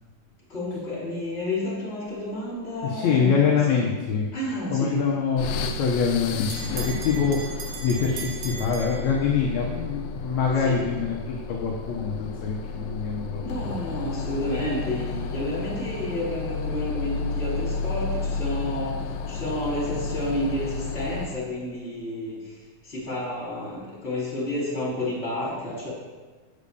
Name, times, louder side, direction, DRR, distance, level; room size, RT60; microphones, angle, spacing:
voice 1, 0.5-3.3 3.7-3.8 4.3-5.0 10.6-10.8 13.4-19.0 19.3-22.4 22.8-25.9, left 1 dB, 20° left, -6 dB, 3.8 m, -30 dB
voice 2, 2.8-4.3 4.7-5.5 5.8-13.7, left 6 dB, 65° left, -1 dB, 2.0 m, -25 dB
sound 1, 5.4-21.5, left 4 dB, 85° left, 2.4 m, -32 dB
Bell, 5.8-9.6, right 5 dB, 70° right, 2.8 m, -39 dB
8.6 x 6.9 x 6.8 m, 1.3 s
omnidirectional pair, 4.0 m